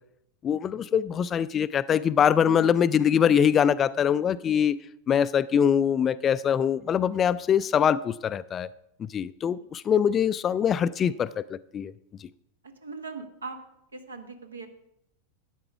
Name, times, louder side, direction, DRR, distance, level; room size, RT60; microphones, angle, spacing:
voice 1, 0.4-4.8 5.1-8.7 9.0-11.9, left 8 dB, 25° left, 0.3 m, -23 dB
voice 2, 12.6-13.6 13.9-14.7, right 4 dB, 75° right, 1.3 m, -40 dB
12.5 x 9.3 x 4.7 m
figure-of-eight pair, 90°, 0 cm